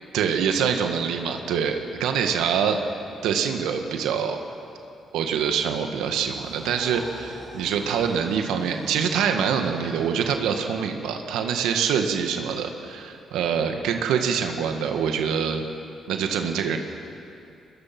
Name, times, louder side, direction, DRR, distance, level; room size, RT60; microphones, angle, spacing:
voice 1, 0.1-2.8 3.2-4.4 5.1-15.6 16.1-16.8, right 7 dB, 90° right, 5 dB, 1.6 m, -25 dB
sound 1, 6.0-10.8, right 1 dB, 15° right, 6.2 m, -42 dB
22.5 x 21.0 x 6.0 m, 2.6 s
cardioid pair, 90°, 0 cm